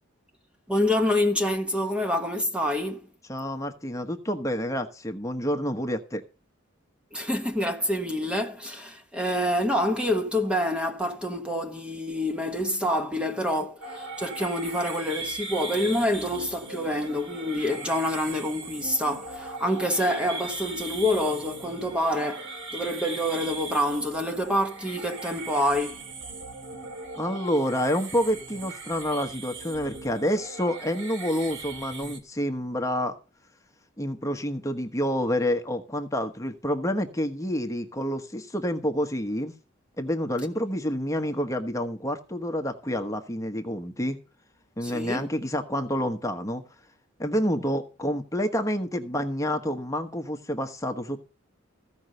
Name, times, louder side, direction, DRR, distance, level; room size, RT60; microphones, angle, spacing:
voice 1, 0.7-3.1 7.1-26.0 44.8-45.3, left 1 dB, 5° right, 1.1 m, -27 dB
voice 2, 3.3-6.2 27.2-33.1 34.0-39.5 40.0-44.2 44.8-46.6 47.2-51.2, equal, 15° left, 1.2 m, -28 dB
sound 1, 13.8-32.2, right 3 dB, 60° right, 2.4 m, -39 dB
16.0 x 5.4 x 6.5 m
head